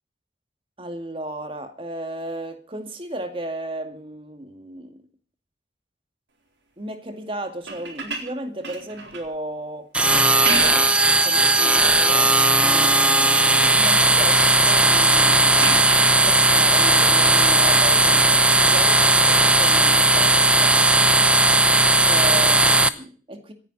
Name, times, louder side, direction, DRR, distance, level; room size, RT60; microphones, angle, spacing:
voice 1, 0.8-5.0 6.8-9.9 10.4-15.9 16.2-21.5 22.0-23.5, right 1 dB, 30° right, 6 dB, 2.1 m, -34 dB
sound 1, 7.6-9.3 10.2-11.0 11.5-12.1 12.6-13.1 13.4-14.1 15.6-16.2 17.9-18.0, right 4 dB, 90° right, 4.4 m, -33 dB
sound 2, 9.9-22.9, right 2 dB, 5° right, 0.7 m, -17 dB
26.5 x 10.0 x 4.1 m, 0.39 s
head